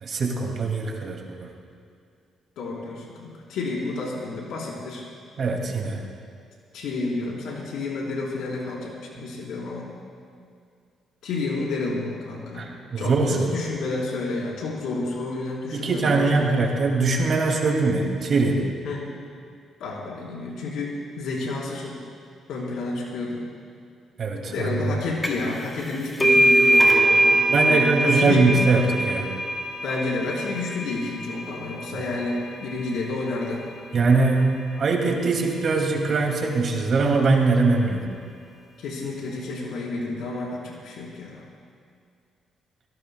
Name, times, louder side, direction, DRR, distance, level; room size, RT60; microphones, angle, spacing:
voice 1, 0.0-1.5 5.4-6.0 9.2-9.3 12.6-13.5 15.7-18.6 24.2-24.8 27.5-29.3 31.9-32.1 33.9-38.1, right 3 dB, 50° right, 1 dB, 2.5 m, -22 dB
voice 2, 2.6-5.0 6.7-9.9 11.2-12.7 13.0-16.7 18.8-19.1 19.8-22.0 22.5-23.4 24.5-28.5 29.8-33.6 38.8-41.4, left 3 dB, 80° left, -4 dB, 4.2 m, -30 dB
sound 1, 25.2-25.5 25.8-33.1, right 1 dB, 10° left, 2.4 m, -22 dB
25.5 x 17.0 x 2.3 m, 2.3 s
cardioid pair, 90°, 0 cm